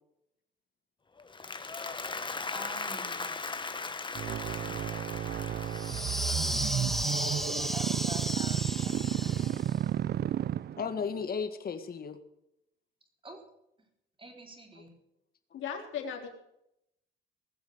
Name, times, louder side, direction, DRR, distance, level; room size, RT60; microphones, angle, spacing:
Applause, 1.2-7.5, left 4 dB, 25° left, 1.3 m, -39 dB
voice 1, 2.5-3.6 7.6-9.6 13.2-13.4 14.2-14.9, right 2 dB, 25° right, 2 dB, 4.4 m, -47 dB
sound 1, 4.1-11.1, right 11 dB, 55° right, 0.5 m, -32 dB
sound 2, 5.7-9.8, equal, ahead, 0.8 m, -34 dB
voice 2, 6.6-7.2 10.8-12.2 14.8-14.9, left 6 dB, 50° left, 9 dB, 1.9 m, -36 dB
voice 3, 15.5-16.3, left 7 dB, 80° left, 2 dB, 3.6 m, -36 dB
20.0 x 7.3 x 8.0 m, 0.81 s
cardioid pair, 90°, 20 cm